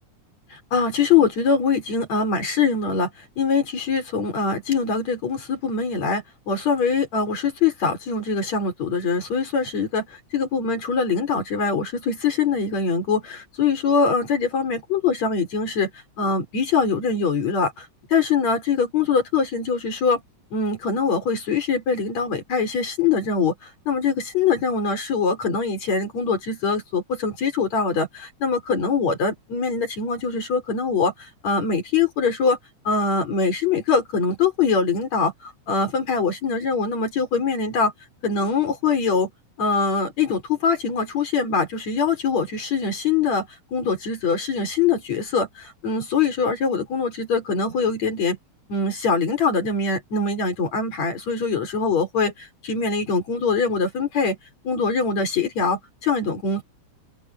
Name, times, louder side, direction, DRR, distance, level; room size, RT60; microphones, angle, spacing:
voice 1, 0.5-3.1 3.4-10.1 10.3-15.9 16.2-20.2 20.5-31.1 31.4-32.6 32.9-37.9 38.2-39.3 39.6-43.5 43.7-48.4 48.7-54.4 54.6-56.6, left 5 dB, 60° left, 6.0 m, -23 dB
open air
omnidirectional pair, 3.4 m